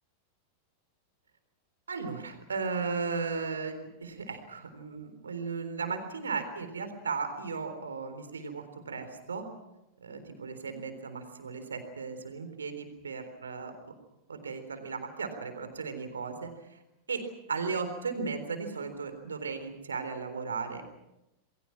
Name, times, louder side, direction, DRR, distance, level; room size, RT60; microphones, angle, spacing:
voice 1, 1.9-9.5 10.0-13.7 14.3-16.8 17.1-20.9, right 5 dB, 70° right, 8 dB, 3.8 m, -36 dB
29.0 x 21.5 x 6.0 m, 0.92 s
figure-of-eight pair, 90°, 0 cm